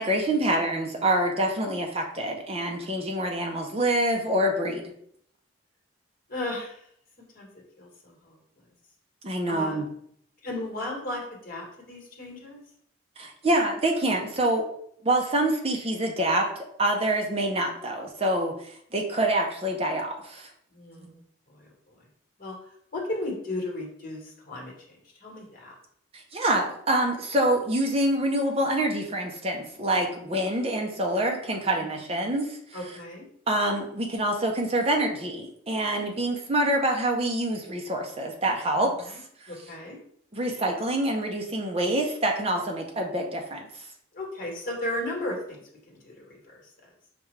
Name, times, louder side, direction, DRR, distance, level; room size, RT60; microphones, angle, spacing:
voice 1, 0.0-4.8 9.2-9.9 13.2-14.6 15.0-16.5 16.8-18.5 18.9-20.5 21.0-21.1 26.3-32.6 33.5-39.2 40.3-43.7, right 1 dB, 30° right, 2 dB, 0.6 m, -26 dB
voice 2, 6.3-6.9 7.3-7.5 7.8-8.4 9.4-9.8 10.4-12.6 20.7-21.1 21.5-21.9 22.4-22.6 22.9-25.7 29.9-30.4 31.8-31.9 32.7-33.2 38.8-39.2 39.5-40.0 44.1-45.6 45.9-46.4, left 1 dB, 45° left, -2 dB, 1.2 m, -35 dB
5.0 x 2.3 x 3.2 m, 0.67 s
head